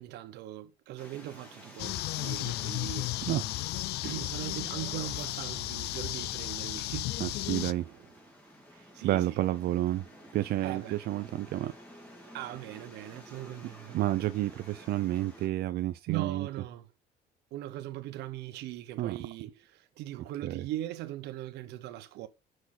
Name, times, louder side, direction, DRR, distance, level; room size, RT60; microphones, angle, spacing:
voice 1, 0.0-3.1 4.0-7.1 8.7-9.4 10.6-11.0 12.3-14.0 16.1-16.9 17.5-22.3, right 14 dB, 85° right, 1.0 m, -40 dB
sound 1, 1.0-15.5, equal, 10° left, 3.4 m, -52 dB
sound 2, 1.8-7.7, left 17 dB, 75° left, 0.4 m, -34 dB
voice 2, 3.2-3.6 7.2-8.1 9.0-10.1 10.3-11.7 13.3-16.5 19.0-19.2 20.4-20.6, right 14 dB, 65° right, 0.6 m, -31 dB
6.4 x 6.3 x 3.8 m
cardioid pair, 110°, 17 cm